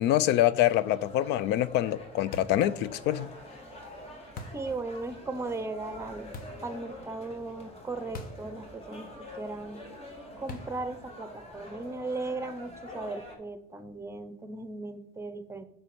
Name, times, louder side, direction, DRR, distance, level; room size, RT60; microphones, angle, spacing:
voice 1, 0.0-3.3, left 13 dB, 85° left, 0.4 m, -25 dB
sound 1, 0.7-13.4, left 1 dB, 35° left, 1.8 m, -46 dB
sound 2, 2.3-2.7 4.4-4.7 6.3-6.7 8.1-8.5 8.8-8.9 10.5-10.9, left 2 dB, 55° left, 1.1 m, -42 dB
voice 2, 4.5-6.3 6.6-9.8 10.4-15.6, right 3 dB, 15° right, 0.7 m, -37 dB
9.0 x 3.4 x 6.0 m
cardioid pair, 110°, 17 cm